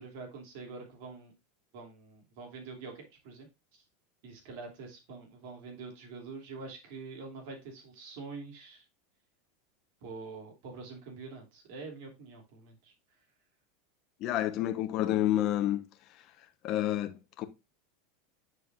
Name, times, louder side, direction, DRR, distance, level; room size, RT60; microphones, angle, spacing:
voice 1, 0.0-1.3 1.7-3.5 4.2-8.8 10.0-12.9, right 4 dB, 65° right, 2.8 m, -45 dB
voice 2, 14.2-15.8 16.6-17.5, left 13 dB, 50° left, 1.0 m, -29 dB
9.5 x 4.5 x 2.5 m
supercardioid pair, 115°, 0 cm